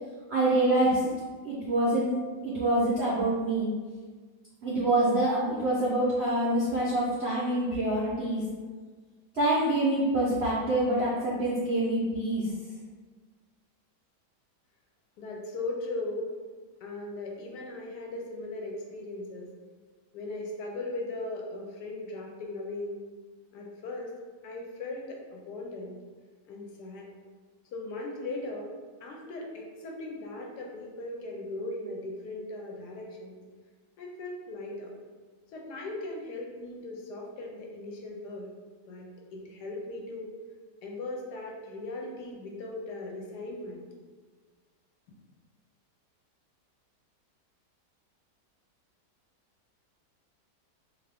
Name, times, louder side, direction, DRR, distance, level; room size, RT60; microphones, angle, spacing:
voice 1, 0.3-1.1 1.4-2.2 2.4-3.7 4.6-8.4 9.3-12.5, right 1 dB, 75° right, -7 dB, 0.6 m, -26 dB
voice 2, 15.2-16.3 16.8-19.5 20.1-23.0 23.5-24.2 24.4-26.0 26.5-27.1 27.7-28.7 29.0-33.4 34.0-34.9 35.5-38.5 38.9-39.1 39.3-40.3 40.8-43.8, left 2 dB, 80° left, 0 dB, 1.2 m, -38 dB
2.7 x 2.5 x 3.4 m, 1.5 s
omnidirectional pair, 1.8 m